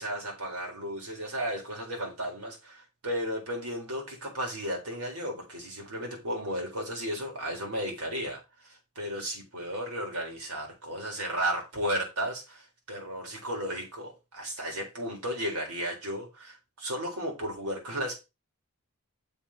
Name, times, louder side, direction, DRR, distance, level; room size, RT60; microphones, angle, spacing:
voice 1, 0.0-8.4 9.0-18.2, equal, 85° right, 4.3 m, -34 dB
7.0 x 4.4 x 6.4 m
head